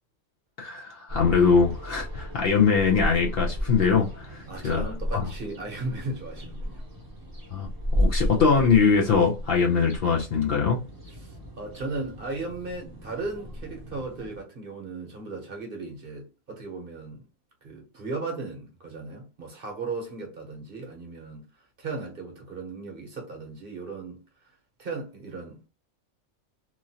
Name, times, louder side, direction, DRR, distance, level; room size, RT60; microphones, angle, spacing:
voice 1, 0.6-4.8 5.1-5.3 7.5-10.8, left 5 dB, 60° left, 0.7 m, -22 dB
sound 1, 1.1-14.4, equal, 20° right, 0.7 m, -33 dB
voice 2, 4.5-6.8 11.2-17.2 17.6-21.5 21.8-24.2 24.8-25.7, right 3 dB, 50° right, 0.9 m, -36 dB
3.0 x 2.4 x 2.7 m
omnidirectional pair, 1.4 m